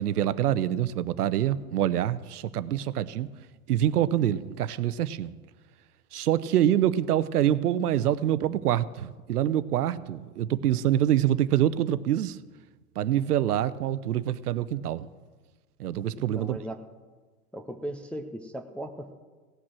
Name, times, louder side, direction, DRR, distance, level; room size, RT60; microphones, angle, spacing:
voice 1, 0.0-3.3 3.7-5.3 6.1-12.4 13.0-15.1 15.8-16.6, right 11 dB, 75° right, 0.7 m, -25 dB
voice 2, 16.1-16.8 17.5-19.1, right 1 dB, 5° left, 0.4 m, -37 dB
17.0 x 6.1 x 7.5 m
hypercardioid pair, 100°, 46 cm